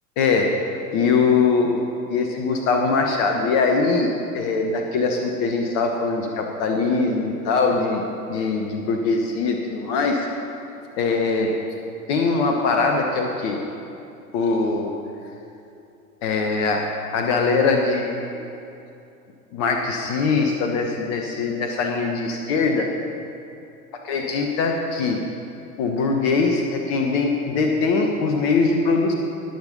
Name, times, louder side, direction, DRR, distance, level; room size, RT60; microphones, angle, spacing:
voice 1, 0.2-0.5 0.9-1.8 2.1-4.1 4.3-8.0 8.3-10.2 11.0-11.5 12.1-13.6 14.3-14.9 16.2-16.9 17.1-18.4 19.5-22.9 24.0-25.2 25.8-29.1, left 4 dB, 50° left, 2 dB, 1.4 m, -22 dB
20.0 x 7.0 x 5.5 m, 2.7 s
figure-of-eight pair, 80°, 44 cm